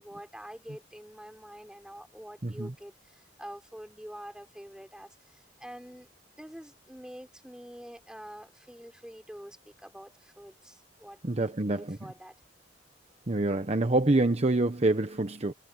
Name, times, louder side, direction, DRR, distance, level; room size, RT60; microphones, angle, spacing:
voice 1, 0.0-6.1 6.4-12.4, equal, 5° right, 3.9 m, -46 dB
voice 2, 2.4-2.7 11.2-12.0 13.3-15.5, right 2 dB, 35° right, 1.0 m, -26 dB
head